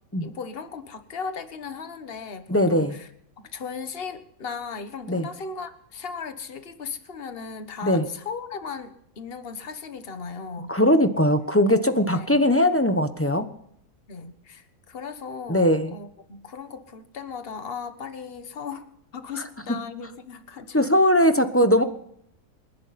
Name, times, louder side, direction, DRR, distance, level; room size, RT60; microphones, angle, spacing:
voice 1, 0.2-3.1 3.5-10.7 12.1-12.5 14.1-18.9 19.1-20.9, left 5 dB, 40° left, 9 dB, 1.5 m, -37 dB
voice 2, 2.5-2.9 5.1-5.3 7.8-8.0 10.7-13.5 15.5-15.9 20.7-21.8, left 1 dB, 10° left, 9 dB, 0.8 m, -20 dB
28.5 x 11.5 x 4.3 m, 0.71 s
omnidirectional pair, 1.7 m